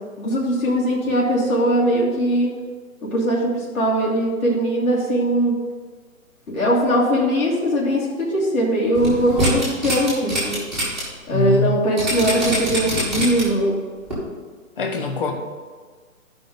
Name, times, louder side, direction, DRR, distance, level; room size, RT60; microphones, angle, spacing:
voice 1, 0.2-2.5 3.0-5.6 6.5-10.6 11.3-13.8, right 1 dB, 80° left, -6 dB, 2.9 m, -20 dB
sound 1, 8.9-11.0 11.4-11.5 12.0-13.6 14.1-14.2, equal, ahead, 1.6 m, -24 dB
voice 2, 11.3-11.8 14.8-15.3, left 2 dB, 40° left, 4 dB, 1.0 m, -23 dB
13.5 x 5.3 x 3.8 m, 1.5 s
hypercardioid pair, 175°, 42 cm